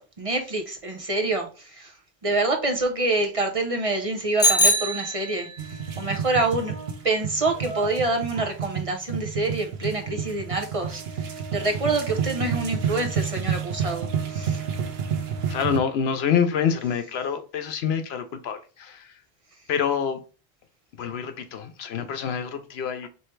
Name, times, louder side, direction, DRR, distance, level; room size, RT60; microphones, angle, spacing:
voice 1, 0.2-1.5 1.8-1.9 2.2-5.5 6.0-6.7 7.0-11.0 11.5-14.6, right 2 dB, 40° right, 0.6 m, -26 dB
Bicycle bell, 4.4-5.7, equal, 20° left, 0.7 m, -22 dB
sound 1, 5.6-15.8, right 7 dB, 75° right, 0.9 m, -30 dB
voice 2, 15.5-19.1 19.7-20.2 21.0-23.1, left 7 dB, 85° left, 0.9 m, -26 dB
3.2 x 3.1 x 4.4 m
omnidirectional pair, 1.0 m